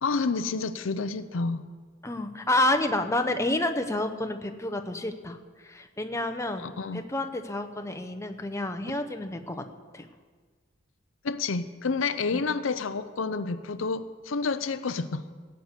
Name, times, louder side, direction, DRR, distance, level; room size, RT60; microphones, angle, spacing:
voice 1, 0.0-1.6 6.6-7.0 11.2-15.3, left 4 dB, 80° left, 12 dB, 0.6 m, -29 dB
voice 2, 2.0-5.4 5.6-9.6 9.9-10.1 12.3-12.4, left 1 dB, 15° left, 6 dB, 0.8 m, -29 dB
17.0 x 6.6 x 8.2 m, 1.5 s
head